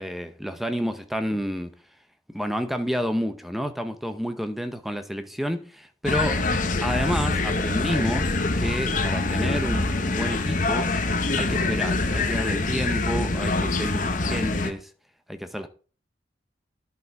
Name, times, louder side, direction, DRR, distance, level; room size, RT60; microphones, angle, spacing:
voice 1, 0.0-1.7 2.3-6.4 6.8-10.9 11.4-14.9 15.3-15.7, equal, ahead, 0.8 m, -30 dB
sound 1, 6.1-14.7, left 2 dB, 45° left, 1.0 m, -25 dB
11.0 x 5.8 x 4.6 m
head